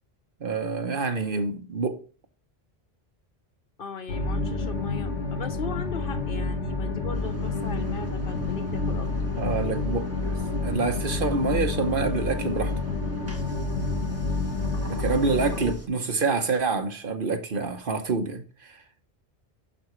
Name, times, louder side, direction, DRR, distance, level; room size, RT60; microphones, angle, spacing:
voice 1, 0.4-2.0 9.4-10.3 10.6-12.7 14.9-18.8, right 4 dB, 55° right, 1.1 m, -27 dB
voice 2, 3.8-9.3, left 5 dB, 60° left, 1.0 m, -38 dB
sound 1, 4.1-15.7, left 3 dB, 90° left, 1.5 m, -29 dB
Engine, 7.1-15.9, right 1 dB, 15° right, 1.3 m, -41 dB
11.5 x 4.9 x 3.1 m
omnidirectional pair, 1.1 m